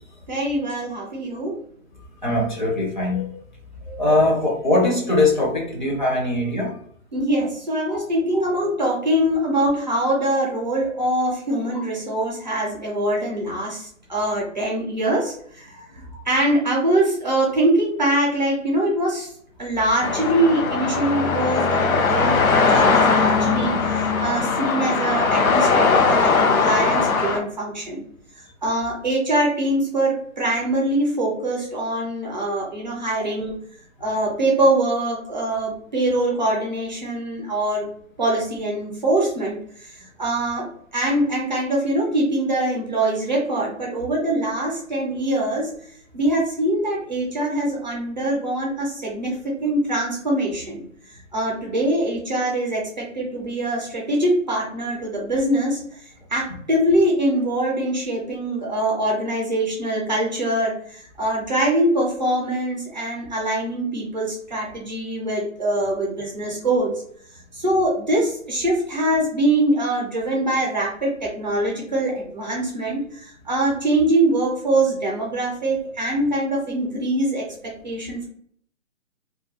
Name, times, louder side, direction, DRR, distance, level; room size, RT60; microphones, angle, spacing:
voice 1, 0.3-1.6 7.1-15.7 16.3-19.3 19.6-28.0 28.6-33.5 34.0-37.9 38.2-40.7 40.9-45.7 46.1-50.8 51.3-55.8 56.3-66.9 67.6-78.3, right 1 dB, 35° right, -2 dB, 0.5 m, -23 dB
voice 2, 2.2-3.3 3.9-6.7 7.9-8.0 8.3-8.4 14.2-14.3 15.9-16.2, left 2 dB, 35° left, -2 dB, 0.5 m, -21 dB
sound 1, 20.0-27.4, left 4 dB, 85° left, 0.6 m, -19 dB
2.3 x 2.2 x 2.7 m, 0.63 s
hypercardioid pair, 160°, 41 cm